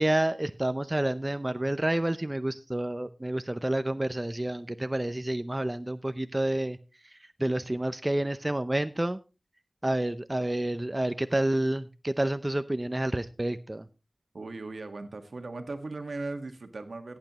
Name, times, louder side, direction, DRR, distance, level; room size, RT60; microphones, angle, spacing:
voice 1, 0.0-6.8 7.0-9.2 9.8-13.9, right 1 dB, 25° right, 11 dB, 0.6 m, -29 dB
voice 2, 14.3-17.2, right 3 dB, 75° right, 7 dB, 1.5 m, -38 dB
17.0 x 9.0 x 3.0 m, 0.31 s
wide cardioid pair, 55°, 0 cm